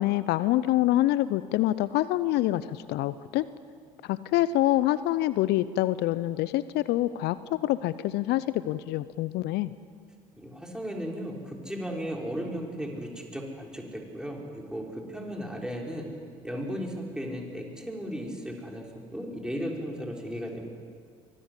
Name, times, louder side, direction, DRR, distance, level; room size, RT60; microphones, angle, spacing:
voice 1, 0.0-3.5 4.0-9.7, left 15 dB, 65° left, 16 dB, 0.6 m, -26 dB
voice 2, 10.4-16.1 16.4-20.6, equal, 5° right, -1 dB, 6.2 m, -35 dB
24.5 x 18.5 x 8.5 m, 2.1 s
hypercardioid pair, 55°, 19 cm